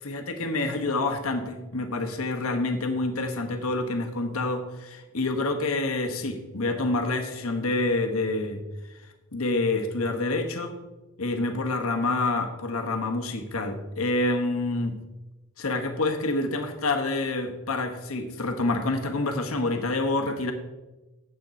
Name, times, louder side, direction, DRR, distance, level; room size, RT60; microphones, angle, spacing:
voice 1, 0.0-8.6 9.3-10.7 11.2-15.0 15.6-20.5, left 2 dB, 70° left, 5 dB, 1.2 m, -27 dB
9.3 x 7.8 x 4.3 m, 1.1 s
head